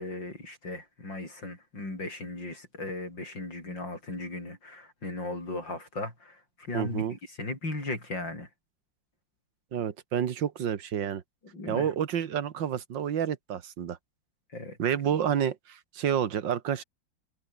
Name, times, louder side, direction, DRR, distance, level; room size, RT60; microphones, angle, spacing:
voice 1, 0.0-8.5 11.5-11.9 14.5-14.8 15.2-15.3, left 2 dB, 80° left, 8.9 m, -37 dB
voice 2, 6.7-7.2 9.7-11.2 11.7-14.0 14.8-16.8, right 9 dB, 80° right, 2.0 m, -29 dB
omnidirectional pair, 2.0 m